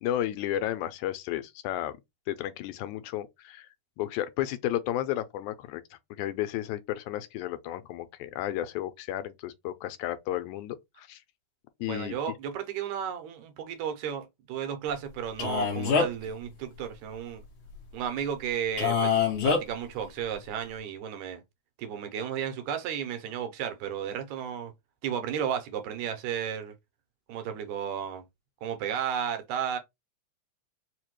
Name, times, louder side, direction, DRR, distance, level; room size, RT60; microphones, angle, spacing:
voice 1, 0.0-2.0 2.3-3.7 4.0-5.8 6.2-11.2 11.8-12.2, left 13 dB, 85° left, 2.0 m, -33 dB
voice 2, 11.8-17.4 17.9-19.2 19.4-21.4 21.8-24.7 25.0-26.7 27.3-28.2 28.6-29.8, right 8 dB, 80° right, 2.0 m, -33 dB
Male speech man speaking, 15.4-16.3 18.8-19.6, left 5 dB, 60° left, 1.5 m, -25 dB
4.9 x 2.2 x 3.0 m
omnidirectional pair, 3.4 m